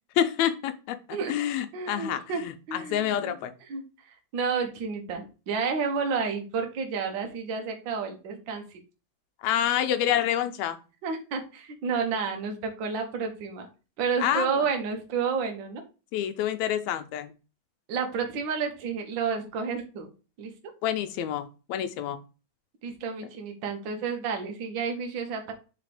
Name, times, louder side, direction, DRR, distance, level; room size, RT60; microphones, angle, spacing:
voice 1, 0.2-1.0 1.3-3.5 9.4-10.8 14.2-14.5 16.1-17.3 20.8-22.2, left 10 dB, 85° left, 9 dB, 1.9 m, -27 dB
voice 2, 1.7-2.4 2.7-3.4 3.7-8.8 11.0-13.7 14.0-15.8 17.9-20.1 20.4-20.5 22.8-25.5, right 5 dB, 55° right, 3 dB, 1.6 m, -31 dB
5.0 x 4.1 x 4.8 m, 0.33 s
omnidirectional pair, 3.3 m